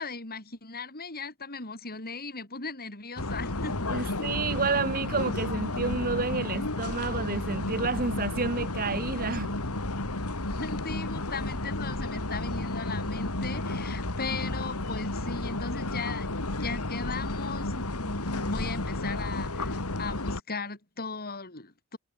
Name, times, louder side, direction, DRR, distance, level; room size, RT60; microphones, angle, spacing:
voice 1, 0.0-4.1 10.5-22.0, left 4 dB, 45° left, 8.0 m, -38 dB
sound 1, 3.2-20.4, left 2 dB, 80° left, 2.8 m, -32 dB
voice 2, 3.9-9.5, right 4 dB, 40° right, 1.5 m, -30 dB
head